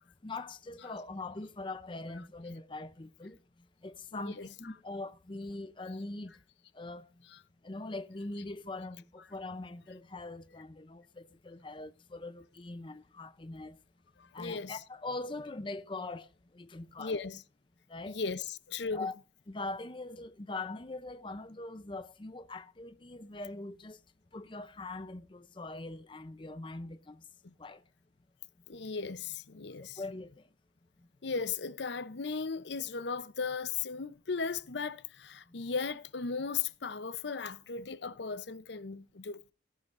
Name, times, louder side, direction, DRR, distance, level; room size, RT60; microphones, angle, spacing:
voice 1, 0.2-3.4 3.8-6.3 6.7-7.0 7.6-13.8 14.3-16.3 16.5-17.3 17.9-18.2 18.9-19.1 19.5-24.0 24.3-27.2 27.6-27.8 30.0-30.3, left 2 dB, 25° left, 0.6 m, -42 dB
voice 2, 4.1-4.5 14.4-14.8 17.0-17.4 18.0-19.1 28.7-30.0 31.2-39.4, left 5 dB, 65° left, 0.7 m, -36 dB
18.0 x 11.5 x 2.6 m
head